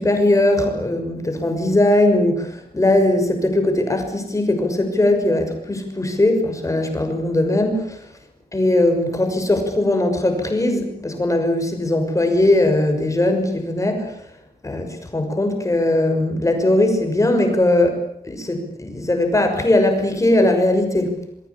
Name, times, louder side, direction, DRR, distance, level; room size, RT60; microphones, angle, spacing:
voice 1, 0.0-8.0 8.5-14.2 14.6-18.0 18.3-21.1, left 1 dB, 20° left, 5 dB, 6.3 m, -19 dB
28.0 x 22.5 x 8.6 m, 0.74 s
wide cardioid pair, 150°, 16 cm